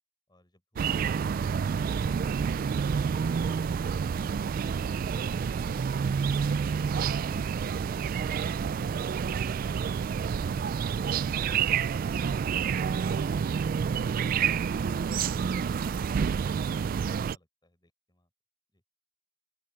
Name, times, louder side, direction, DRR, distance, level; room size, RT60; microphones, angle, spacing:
sound 1, 0.8-17.4, right 6 dB, 45° right, 0.3 m, -28 dB
voice 1, 16.9-18.3 18.7-18.8, left 1 dB, 20° left, 6.5 m, -63 dB
open air
head